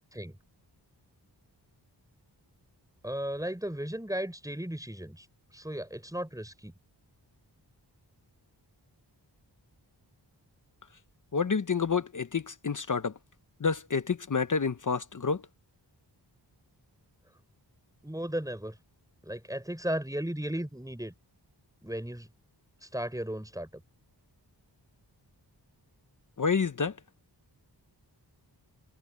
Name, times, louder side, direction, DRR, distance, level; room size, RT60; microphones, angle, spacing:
voice 1, 3.0-5.3 5.5-6.7 18.0-18.8 19.2-21.1 21.8-22.3 22.8-23.8, right 1 dB, 10° right, 5.3 m, -35 dB
voice 2, 11.3-13.1 13.6-15.4 26.4-27.0, left 5 dB, 45° left, 0.9 m, -28 dB
wide cardioid pair, 80°, 43 cm